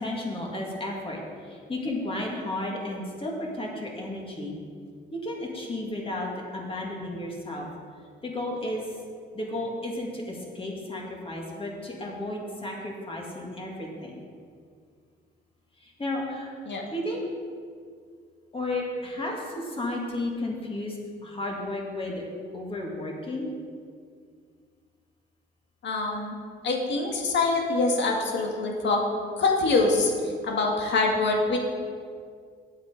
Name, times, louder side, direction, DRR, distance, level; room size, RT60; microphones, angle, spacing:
voice 1, 0.0-4.6 5.1-7.7 8.2-8.9 9.3-14.2 15.8-16.5 16.9-17.2 18.5-21.0 21.2-22.2 22.5-23.5, left 1 dB, 25° left, -2 dB, 2.1 m, -33 dB
voice 2, 25.8-29.0 29.4-30.1 30.4-31.6, left 3 dB, 65° left, 0 dB, 1.8 m, -25 dB
8.9 x 7.9 x 5.1 m, 2.1 s
cardioid pair, 90°, 20 cm